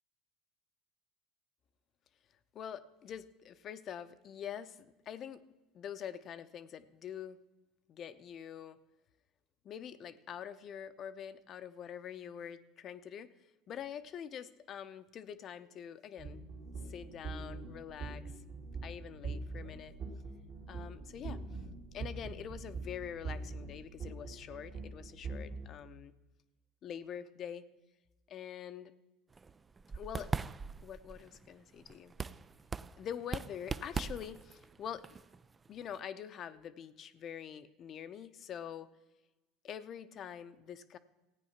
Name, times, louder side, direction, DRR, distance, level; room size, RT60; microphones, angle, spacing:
voice 1, 2.5-5.4 5.7-7.4 7.9-8.8 9.6-13.3 13.7-16.4 16.8-18.2 18.8-20.0 20.7-21.4 21.9-26.1 26.8-27.6 28.3-28.9 29.9-30.3 30.8-32.1 33.0-35.0 35.7-38.9 39.6-41.0, left 9 dB, 40° left, 12 dB, 0.7 m, -45 dB
sound 1, 16.2-25.7, right 3 dB, 50° right, 2.3 m, -43 dB
sound 2, 29.3-36.0, right 4 dB, 20° right, 0.3 m, -41 dB
15.0 x 9.1 x 5.8 m, 1.1 s
supercardioid pair, 130°, 0 cm